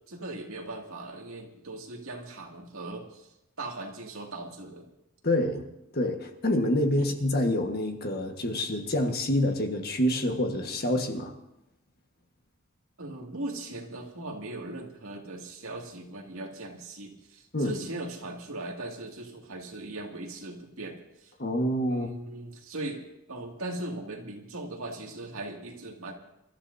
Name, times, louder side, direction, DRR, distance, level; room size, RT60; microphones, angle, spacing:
voice 1, 0.1-3.3 3.6-4.9 6.9-7.1 13.0-21.3 21.9-26.1, right 2 dB, 70° right, 0 dB, 2.4 m, -39 dB
voice 2, 5.2-5.7 5.9-11.3 17.5-17.7 21.4-22.1, left 1 dB, 45° left, 4 dB, 1.5 m, -27 dB
27.5 x 13.0 x 2.8 m, 0.88 s
head